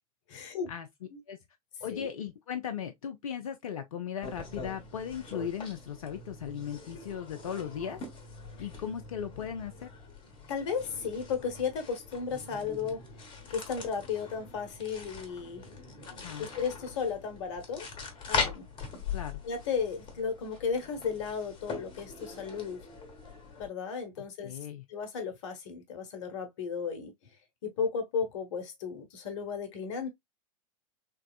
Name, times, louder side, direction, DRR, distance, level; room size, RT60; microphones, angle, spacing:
voice 1, 0.3-0.7 1.1-1.2 1.9-2.1 10.5-13.0 13.5-15.6 16.4-17.9 18.3-18.7 19.4-22.8 23.6-24.6 24.9-27.1 27.6-30.1, left 6 dB, 55° left, 1.0 m, -34 dB
voice 2, 1.8-8.0 8.6-9.9 16.1-16.5 19.1-19.4 24.2-24.8, left 8 dB, 70° left, 0.5 m, -37 dB
sound 1, 4.2-23.7, left 4 dB, 25° left, 1.1 m, -41 dB
3.4 x 3.0 x 2.2 m
figure-of-eight pair, 90°, 19 cm